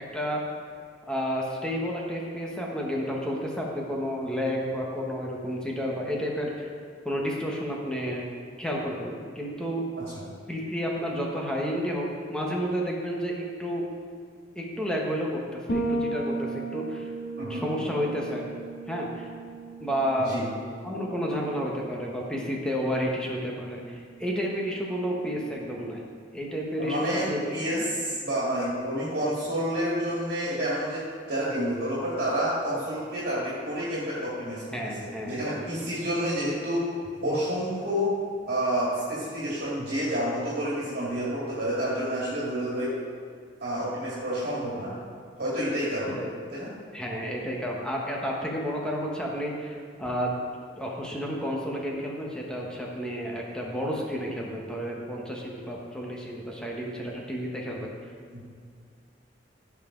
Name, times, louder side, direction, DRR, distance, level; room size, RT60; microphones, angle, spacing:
voice 1, 1.1-6.7 7.0-8.3 8.6-9.8 10.5-13.8 14.5-17.1 17.5-18.5 18.9-19.3 19.8-20.3 20.8-26.1 26.3-27.4 27.7-27.8 34.7-35.6 46.1-46.3 46.9-50.4 50.8-57.9, equal, 5° left, -2 dB, 1.3 m, -31 dB
Bass guitar, 15.7-25.4, right 2 dB, 80° left, 2.0 m, -37 dB
voice 2, 20.2-20.5 26.8-34.6 35.0-36.9 37.2-38.1 38.5-42.9 43.6-44.9 45.4-46.2 46.5-46.7 58.3-58.4, equal, 55° right, -7 dB, 2.2 m, -29 dB
15.0 x 5.9 x 3.9 m, 2.2 s
head